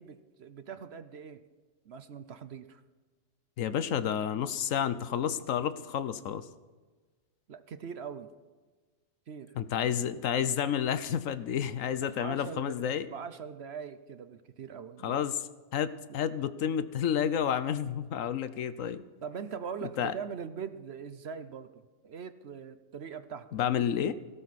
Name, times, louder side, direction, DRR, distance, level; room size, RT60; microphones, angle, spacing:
voice 1, 0.0-1.4 1.9-2.8 7.5-8.3 9.3-9.6 12.0-15.3 16.1-16.2 19.2-23.5, right 6 dB, 55° right, 11 dB, 0.9 m, -42 dB
voice 2, 3.6-6.5 9.5-13.1 15.0-19.0 20.0-20.1 23.5-24.1, left 9 dB, 75° left, 14 dB, 1.1 m, -30 dB
17.5 x 16.0 x 4.2 m, 1.3 s
omnidirectional pair, 1.4 m